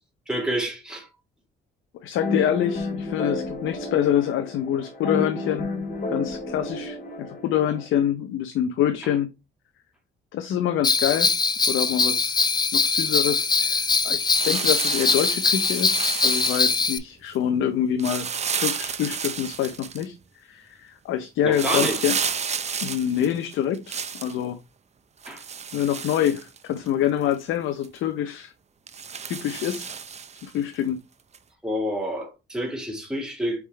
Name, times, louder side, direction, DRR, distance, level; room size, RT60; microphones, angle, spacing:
voice 1, 0.3-1.1 21.4-22.1 25.3-25.4 31.6-33.7, equal, 5° right, 1.8 m, -28 dB
voice 2, 2.0-5.7 6.1-9.3 10.3-11.3 11.7-12.5 12.7-18.3 18.5-20.1 20.4-22.2 22.8-24.6 25.7-28.5 29.3-29.9 30.4-31.0, left 10 dB, 80° left, 0.6 m, -26 dB
sound 1, 2.2-7.9, left 2 dB, 45° left, 1.6 m, -31 dB
Bell, 10.8-17.0, left 4 dB, 20° left, 0.5 m, -22 dB
sound 2, 14.3-17.0 18.0-20.0 21.5-24.3 25.2-26.9 27.3-27.4 27.8-28.0 28.9-30.5 31.3-31.4, right 6 dB, 35° right, 0.6 m, -31 dB
4.5 x 3.6 x 3.1 m
cardioid pair, 90°, 20 cm